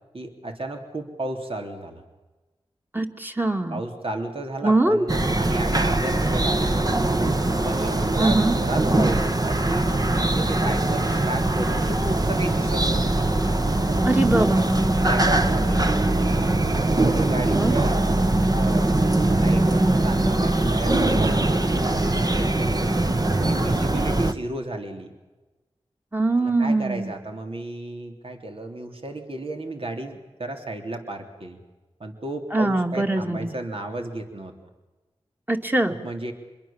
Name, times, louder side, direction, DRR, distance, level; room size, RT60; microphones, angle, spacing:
voice 1, 0.1-2.0 3.7-7.0 7.6-13.3 14.2-14.5 14.9-16.2 16.8-18.0 18.5-19.0 19.3-22.8 23.3-25.1 26.4-31.6 32.0-34.5 35.9-36.3, right 2 dB, 60° right, 3 dB, 3.5 m, -33 dB
voice 2, 2.9-3.8 4.6-5.0 8.2-8.5 14.0-14.6 17.5-17.8 26.1-27.1 32.5-33.5 35.5-35.9, right 2 dB, 20° right, 4 dB, 2.7 m, -22 dB
sound 1, 5.1-24.3, right 2 dB, 35° right, 1.5 m, -22 dB
27.5 x 22.0 x 7.4 m, 1.2 s
cardioid pair, 45°, 11 cm